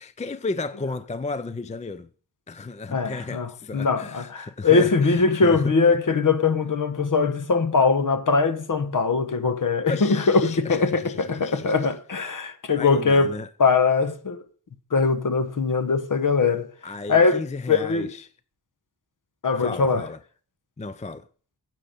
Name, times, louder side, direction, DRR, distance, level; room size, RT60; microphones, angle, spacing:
voice 1, 0.0-2.1 2.5-5.7 9.9-11.8 12.8-13.5 16.8-18.3 19.6-20.2 20.8-21.3, left 3 dB, 20° left, 0.4 m, -34 dB
voice 2, 2.9-13.3 13.6-14.4 14.9-16.7 17.1-17.4 17.7-18.1 19.4-20.0, left 4 dB, 50° left, 1.1 m, -21 dB
9.8 x 7.7 x 5.2 m
wide cardioid pair, 115°, 41 cm